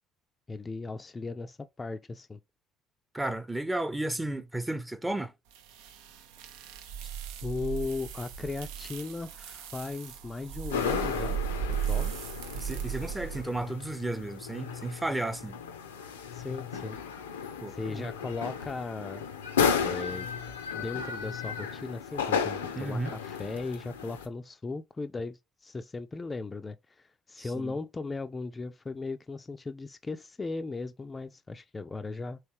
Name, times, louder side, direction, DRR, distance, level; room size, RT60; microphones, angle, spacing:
voice 1, 0.5-2.4 7.0-7.1 7.4-11.4 11.9-12.1 16.3-17.0 17.7-19.3 19.8-20.3 20.7-32.4, left 3 dB, 25° left, 0.3 m, -37 dB
voice 2, 3.1-5.3 12.5-15.6 17.6-18.1 22.8-23.1 27.4-27.7, right 2 dB, 10° right, 0.6 m, -33 dB
sound 1, 5.5-13.4, right 9 dB, 75° right, 0.4 m, -36 dB
sound 2, 10.7-24.3, left 6 dB, 90° left, 0.5 m, -34 dB
3.2 x 3.1 x 3.0 m
hypercardioid pair, 55°, 0 cm